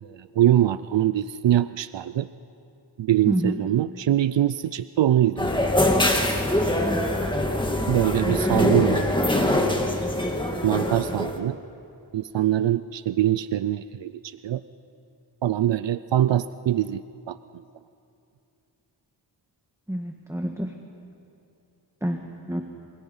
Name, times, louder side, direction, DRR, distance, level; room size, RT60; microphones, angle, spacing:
voice 1, 0.0-2.3 3.0-5.6 7.9-9.8 10.6-11.6 12.1-14.6 15.4-17.4, right 12 dB, 85° right, 14 dB, 0.6 m, -23 dB
voice 2, 3.3-3.6 6.7-7.1 8.2-8.5 19.9-20.7 22.0-22.2 22.5-22.6, equal, 5° right, 3 dB, 1.5 m, -28 dB
sound 1, 5.4-11.4, left 1 dB, 10° left, 2.1 m, -23 dB
27.0 x 26.0 x 5.5 m, 2.6 s
wide cardioid pair, 85°, 43 cm